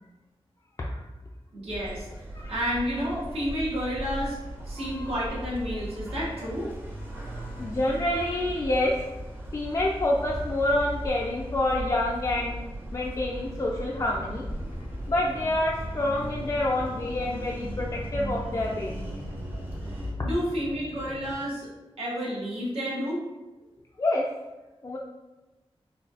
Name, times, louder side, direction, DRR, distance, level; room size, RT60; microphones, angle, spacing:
voice 1, 1.5-2.1 2.5-4.4 4.6-6.7 20.2-21.7 22.0-23.2, equal, 80° right, -6 dB, 1.2 m, -30 dB
sound 1, 1.7-20.1, right 1 dB, 20° right, 0.6 m, -37 dB
voice 2, 4.8-5.1 7.2-9.1 9.5-12.5 12.9-14.5 15.1-19.1 24.0-24.3 24.8-25.0, left 1 dB, 35° left, -3 dB, 0.4 m, -27 dB
sound 2, 14.0-21.3, left 1 dB, 85° left, 0.6 m, -41 dB
3.9 x 2.4 x 2.8 m, 1.1 s
wide cardioid pair, 90°, 10 cm